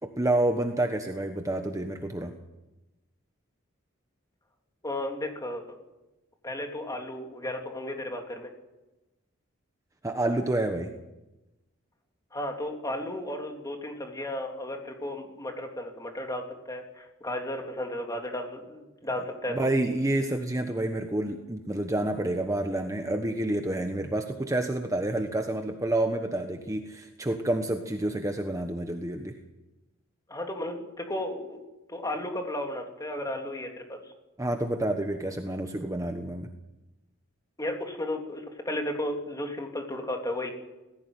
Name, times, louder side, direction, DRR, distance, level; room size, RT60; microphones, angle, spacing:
voice 1, 0.0-2.3 10.0-10.9 19.5-29.4 34.4-36.5, right 1 dB, 15° right, 5 dB, 1.2 m, -29 dB
voice 2, 4.8-5.8 6.4-8.5 12.3-19.7 30.3-31.6 31.9-34.0 37.6-40.5, left 1 dB, 20° left, 3 dB, 3.1 m, -34 dB
19.5 x 16.0 x 9.2 m, 1.0 s
head